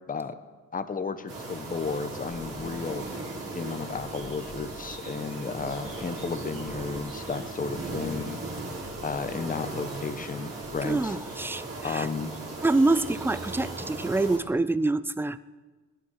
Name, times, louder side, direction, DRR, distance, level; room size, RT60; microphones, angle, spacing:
voice 1, 0.7-3.0 3.5-8.4 9.0-11.2 11.8-12.3, left 5 dB, 25° left, 10 dB, 1.0 m, -33 dB
sound 1, 1.3-14.4, right 2 dB, 50° right, 4.9 m, -37 dB
sound 2, 2.3-6.3 6.7-11.0, left 4 dB, 75° left, 2.8 m, -50 dB
voice 2, 10.8-12.1 12.6-15.4, right 2 dB, 5° right, 16 dB, 0.5 m, -26 dB
21.5 x 10.5 x 4.8 m, 1.3 s
cardioid pair, 90°, 30 cm